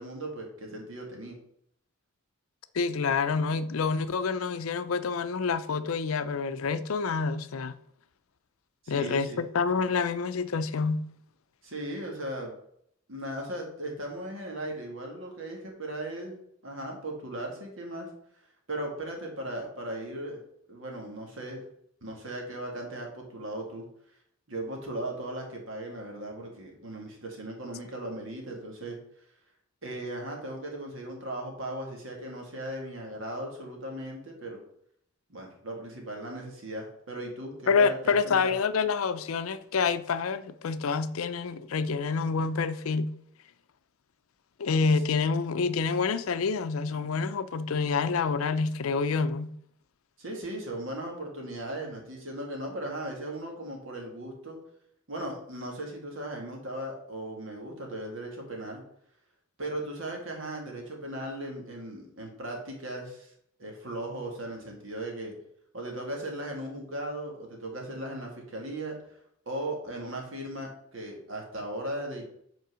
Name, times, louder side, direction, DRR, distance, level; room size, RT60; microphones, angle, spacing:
voice 1, 0.0-1.3 8.8-9.4 11.6-12.5 13.1-18.1 18.7-20.4 20.7-21.6 22.0-23.8 24.5-29.0 29.8-34.6 35.3-38.5 50.2-54.6 55.1-58.8 59.6-63.3 63.6-65.3 65.7-69.0 69.5-72.2, right 1 dB, 70° right, 2.1 m, -37 dB
voice 2, 2.7-7.7 8.9-11.0 37.7-43.1 44.6-49.5, left 5 dB, 85° left, 0.5 m, -27 dB
5.5 x 4.5 x 6.2 m
head